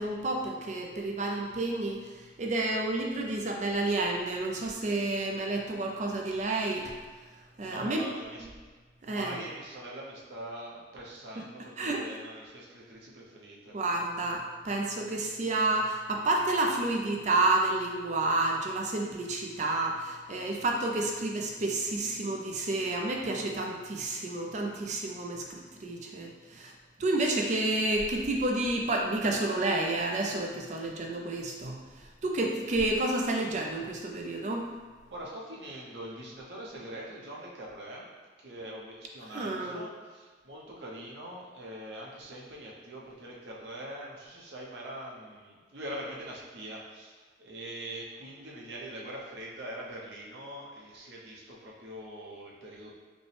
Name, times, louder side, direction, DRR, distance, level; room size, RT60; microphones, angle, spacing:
voice 1, 0.0-2.0 2.4-6.9 7.6-8.0 9.1-9.4 11.8-12.0 13.7-26.7 27.0-31.8 32.2-34.7 39.3-39.8, right 2 dB, 40° right, 1 dB, 0.5 m, -30 dB
voice 2, 7.6-8.5 9.0-13.8 35.1-53.0, right 1 dB, 70° right, -4 dB, 0.9 m, -43 dB
5.2 x 2.2 x 3.3 m, 1.4 s
head